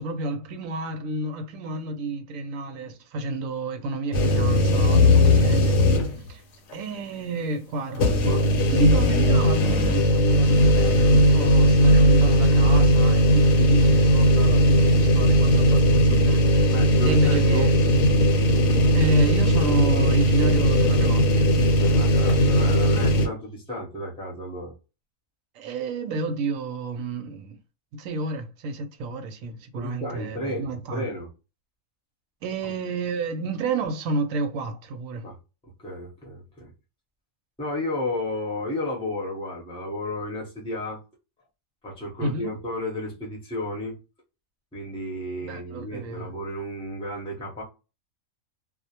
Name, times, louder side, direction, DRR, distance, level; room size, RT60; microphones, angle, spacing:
voice 1, 0.0-5.8 6.3-6.4 6.7-16.8 17.0-17.7 18.9-21.5 25.5-27.6 27.9-31.1 32.4-35.3 42.2-42.5 45.4-46.3, right 2 dB, 75° right, 1.0 m, -30 dB
sound 1, 4.1-6.3 6.7-6.8 7.9-23.3, equal, 65° left, 0.9 m, -18 dB
voice 2, 16.7-17.7 21.8-24.7 29.8-31.3 32.6-32.7 35.2-35.4 35.8-36.7 37.6-41.0 41.8-44.0 44.7-47.6, left 1 dB, 5° left, 0.6 m, -32 dB
2.4 x 2.1 x 2.8 m
omnidirectional pair, 1.5 m